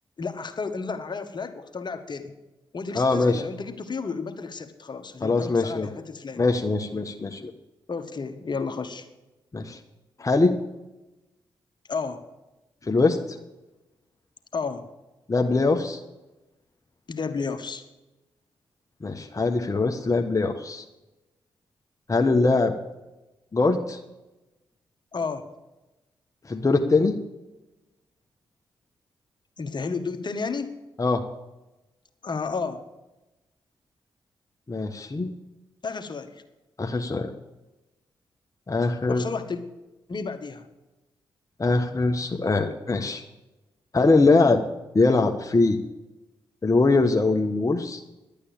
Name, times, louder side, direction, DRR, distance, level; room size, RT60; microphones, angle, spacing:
voice 1, 0.2-2.3 2.7-6.4 7.9-9.1 11.9-12.2 14.5-14.8 17.1-17.8 25.1-25.5 29.6-30.7 32.2-32.8 35.8-36.4 39.1-39.6 40.1-40.7, left 4 dB, 50° left, 8 dB, 1.5 m, -32 dB
voice 2, 2.9-3.4 5.2-5.9 6.4-7.5 9.5-9.8 10.2-10.6 12.8-13.4 15.3-16.0 19.0-20.8 22.1-22.7 23.5-24.0 26.4-27.1 31.0-31.2 34.7-35.3 36.8-37.3 38.7-39.3 41.6-43.2 43.9-44.6 44.9-45.8 46.6-48.0, left 3 dB, 35° left, 3 dB, 1.3 m, -22 dB
11.5 x 8.7 x 8.7 m, 1.0 s
supercardioid pair, 40°, 10 cm